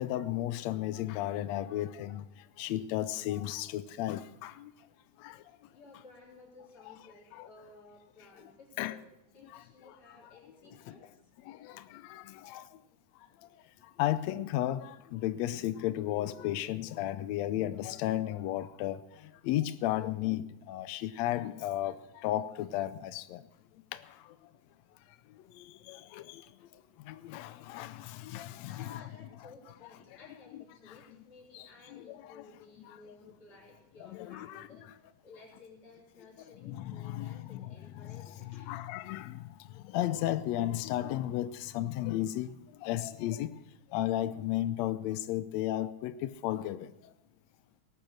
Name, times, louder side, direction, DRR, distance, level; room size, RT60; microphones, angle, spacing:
voice 1, 0.0-2.2 2.6-4.7 5.2-5.4 7.3-7.5 8.8-9.0 9.5-9.6 10.9-11.0 11.5-12.6 14.0-19.0 19.4-23.4 23.9-24.0 25.5-26.4 27.0-29.3 30.5-31.0 31.5-32.4 32.8-33.0 34.0-34.7 36.6-39.5 39.7-42.6 42.8-43.5 43.9-46.9, left 13 dB, 90° left, 1.5 m, -34 dB
voice 2, 5.7-9.1 9.3-11.0 28.6-34.9 35.2-38.7, left 3 dB, 40° left, 4.6 m, -56 dB
18.5 x 9.1 x 6.4 m
omnidirectional pair, 3.8 m